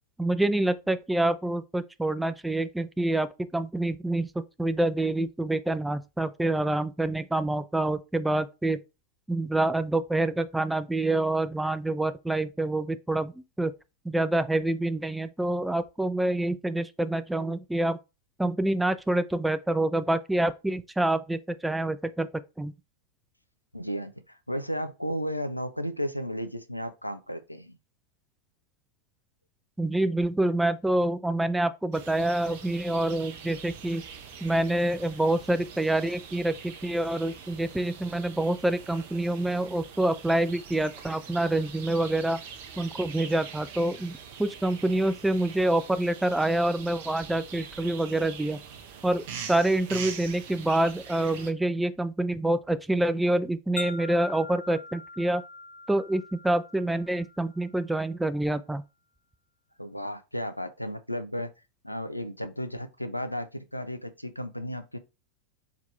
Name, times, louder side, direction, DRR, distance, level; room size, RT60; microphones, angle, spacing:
voice 1, 0.2-8.8 9.3-13.3 13.6-13.7 14.0-18.0 18.4-22.3 22.6-22.7 29.8-34.0 34.4-42.4 42.8-48.6 49.0-55.4 55.9-58.8, right 1 dB, 5° right, 0.3 m, -27 dB
voice 2, 23.7-27.8 59.8-61.5 61.8-65.0, equal, 90° left, 0.5 m, -34 dB
sound 1, 31.9-51.5, right 7 dB, 50° right, 0.8 m, -44 dB
Wind chime, 53.8-58.1, left 3 dB, 50° left, 1.3 m, -43 dB
4.4 x 3.7 x 3.3 m
figure-of-eight pair, 90°, 0 cm